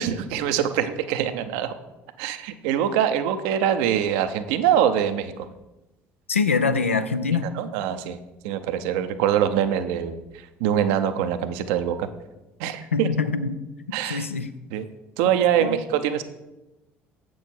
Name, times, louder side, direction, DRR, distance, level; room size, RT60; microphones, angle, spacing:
voice 1, 0.0-1.7 2.2-5.5 7.5-8.2 8.4-12.1 12.6-13.1 13.9-14.3 14.7-14.8 15.2-16.2, right 9 dB, 65° right, 10 dB, 0.6 m, -24 dB
voice 2, 6.3-7.5 12.9-13.6 14.1-14.5 15.2-15.3 15.6-15.8, left 5 dB, 90° left, 11 dB, 0.4 m, -24 dB
8.0 x 6.2 x 4.4 m, 1.0 s
figure-of-eight pair, 60°, 7 cm